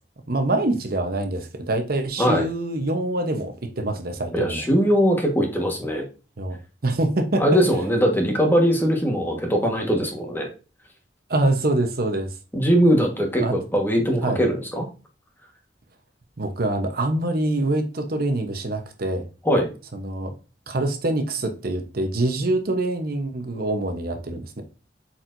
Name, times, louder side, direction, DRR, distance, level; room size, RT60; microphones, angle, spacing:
voice 1, 0.3-4.7 6.4-7.4 11.3-12.3 13.4-13.6 14.2-14.4 16.4-19.3 19.9-20.3 20.7-24.6, right 2 dB, 55° right, 1.0 m, -25 dB
voice 2, 4.3-6.0 7.4-10.5 12.5-14.9 19.4-19.7, equal, 10° left, 1.5 m, -21 dB
8.2 x 4.6 x 2.6 m
head